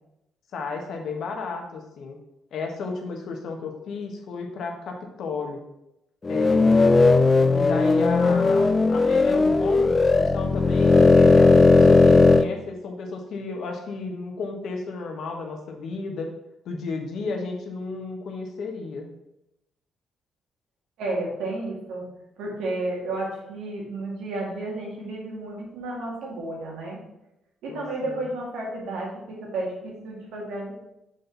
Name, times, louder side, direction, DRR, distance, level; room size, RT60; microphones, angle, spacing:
voice 1, 0.5-2.2 2.5-5.6 6.3-7.2 7.5-16.3 16.6-19.1 27.7-28.3, left 4 dB, 70° left, 3 dB, 1.2 m, -33 dB
sound 1, 6.2-12.5, left 3 dB, 25° left, 0.3 m, -17 dB
voice 2, 21.0-22.1 22.4-27.0 27.6-30.7, right 2 dB, 90° right, -3 dB, 2.0 m, -32 dB
6.4 x 4.2 x 4.0 m, 0.87 s
cardioid pair, 90°, 0 cm